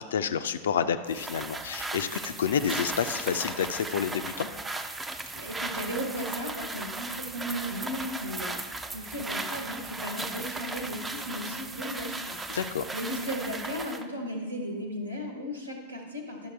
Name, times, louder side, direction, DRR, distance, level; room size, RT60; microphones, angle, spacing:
voice 1, 0.0-4.5 12.5-12.8, left 7 dB, 65° left, 11 dB, 0.4 m, -29 dB
sound 1, 1.1-14.1, right 3 dB, 10° right, 0.5 m, -36 dB
voice 2, 5.4-8.6 8.9-12.5 12.9-16.5, equal, 80° right, 1 dB, 1.3 m, -35 dB
11.0 x 6.4 x 3.4 m, 1.5 s
figure-of-eight pair, 90°, 0 cm